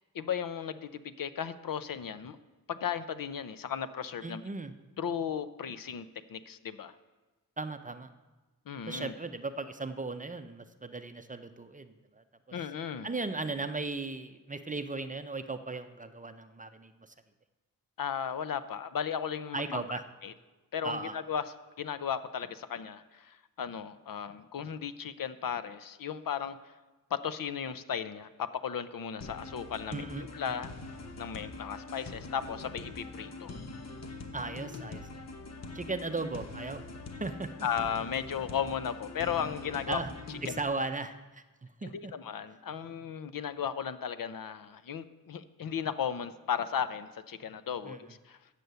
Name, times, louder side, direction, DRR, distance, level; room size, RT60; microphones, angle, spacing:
voice 1, 0.0-2.4 2.7-4.4 5.0-6.9 8.7-9.1 12.5-13.1 18.0-19.9 20.2-20.3 20.7-21.4 21.8-26.7 27.1-30.1 30.3-30.7 31.2-33.5 37.6-40.0 40.5-40.6 41.9-48.4, left 8 dB, 75° left, 13 dB, 0.6 m, -35 dB
voice 2, 4.2-4.7 7.6-8.1 8.9-12.2 13.0-17.1 19.5-20.0 20.8-21.2 29.9-30.3 34.3-35.0 35.7-36.8 37.2-37.5 39.9-40.1 40.4-41.2 41.6-42.1 47.8-48.0, right 3 dB, 25° right, 9 dB, 0.5 m, -36 dB
sound 1, 29.2-40.6, left 3 dB, 50° left, 0.9 m, -43 dB
8.3 x 7.8 x 6.8 m, 1.2 s
wide cardioid pair, 110°, 34 cm